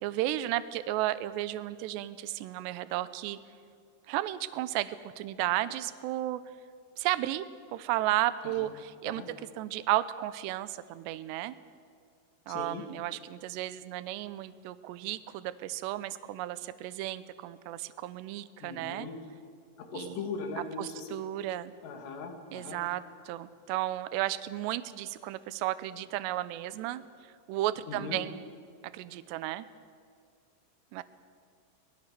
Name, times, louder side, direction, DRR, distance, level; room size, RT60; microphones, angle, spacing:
voice 1, 0.0-3.4 4.1-6.4 7.0-7.5 7.7-9.2 9.6-11.6 12.5-19.1 19.9-20.2 20.8-21.7 22.5-27.0 27.5-28.4 28.8-29.7 30.9-31.0, right 15 dB, 80° right, 14 dB, 2.8 m, -33 dB
voice 2, 12.5-12.8 18.6-19.2 19.8-21.1 21.8-22.8 27.9-28.2, left 4 dB, 70° left, 4 dB, 4.5 m, -39 dB
25.0 x 20.5 x 6.8 m, 2.2 s
omnidirectional pair, 5.3 m